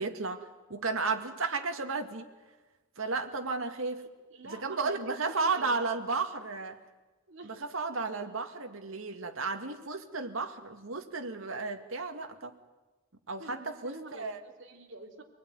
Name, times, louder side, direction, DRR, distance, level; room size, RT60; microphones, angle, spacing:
voice 1, 0.0-2.3 3.0-4.0 4.4-6.8 7.4-12.5 13.3-14.4, right 4 dB, 80° right, 6 dB, 2.0 m, -33 dB
voice 2, 4.3-5.9 7.3-7.7 13.4-15.2, right 2 dB, 65° right, 2 dB, 3.3 m, -46 dB
26.0 x 20.0 x 9.6 m, 1.2 s
head